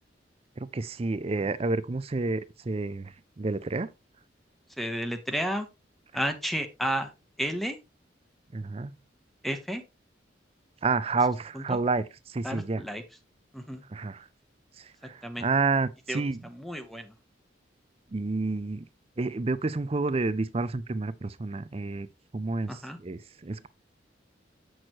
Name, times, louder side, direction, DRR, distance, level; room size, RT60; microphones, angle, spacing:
voice 1, 0.6-3.9 8.5-8.9 10.8-12.8 13.9-14.3 14.8-16.4 18.1-18.9 19.2-22.1 22.3-23.7, right 3 dB, 30° right, 0.5 m, -29 dB
voice 2, 4.8-5.7 6.1-7.1 7.4-7.8 9.4-9.8 11.5-11.6 12.4-13.0 13.5-13.8 15.2-15.5 16.1-16.2 16.5-17.1 22.7-23.0, equal, ahead, 0.8 m, -31 dB
7.8 x 6.2 x 2.9 m
head